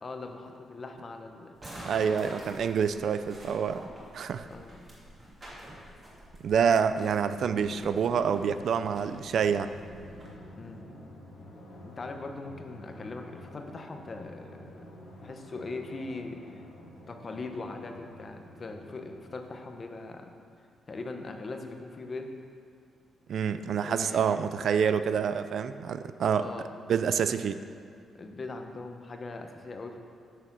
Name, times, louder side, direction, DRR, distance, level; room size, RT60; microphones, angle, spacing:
voice 1, 0.0-1.5 4.5-4.8 10.5-10.8 11.8-16.4 17.1-20.3 20.9-22.3 23.8-24.6 26.4-26.7 28.1-30.0, left 3 dB, 30° left, 4 dB, 0.8 m, -40 dB
sound 1, 1.5-10.3, right 1 dB, 25° right, 2.2 m, -48 dB
voice 2, 1.8-3.8 4.1-4.5 6.4-9.7 23.3-26.5 26.9-27.6, right 7 dB, 60° right, 11 dB, 0.3 m, -27 dB
Drum, 7.0-20.1, left 1 dB, 90° left, 1.9 m, -49 dB
9.1 x 6.7 x 6.0 m, 2.3 s
wide cardioid pair, 155°, 0 cm